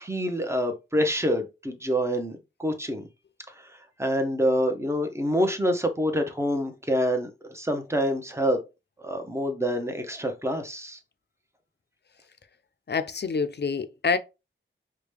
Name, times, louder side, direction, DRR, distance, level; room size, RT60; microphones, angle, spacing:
voice 1, 0.0-2.3 2.6-3.1 4.0-8.6 9.0-11.0, equal, 15° right, 0.8 m, -26 dB
voice 2, 12.9-14.2, left 5 dB, 55° left, 0.4 m, -27 dB
4.8 x 2.2 x 3.3 m
wide cardioid pair, 75°, 20 cm